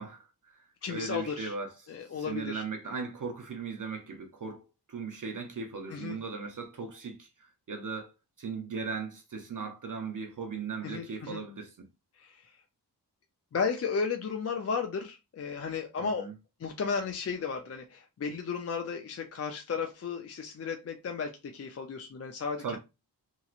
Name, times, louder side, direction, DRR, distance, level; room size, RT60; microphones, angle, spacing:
voice 1, 0.0-8.1 8.4-11.9 16.0-16.3 22.6-22.8, right 4 dB, 50° right, 0.6 m, -38 dB
voice 2, 0.8-1.5 1.9-2.6 5.9-6.2 10.8-11.4 12.2-12.6 13.5-16.3 16.6-22.8, left 5 dB, 40° left, 0.5 m, -34 dB
3.0 x 2.7 x 2.4 m
wide cardioid pair, 110°, 40 cm